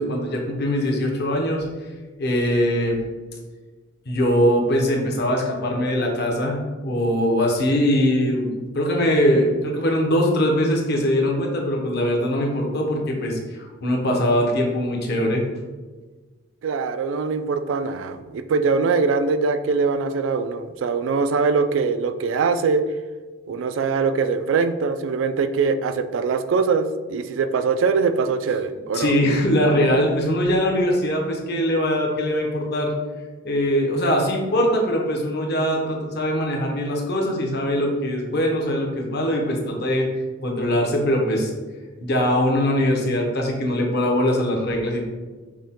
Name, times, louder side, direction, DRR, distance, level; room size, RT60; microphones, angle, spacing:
voice 1, 0.0-1.6 2.2-3.0 4.1-15.5 28.9-32.9 33.4-40.1 40.4-41.5 42.0-45.1, equal, 55° left, 0 dB, 0.9 m, -22 dB
voice 2, 16.6-22.8 23.5-29.1, right 4 dB, 70° right, 9 dB, 0.3 m, -22 dB
6.3 x 2.2 x 3.7 m, 1.3 s
head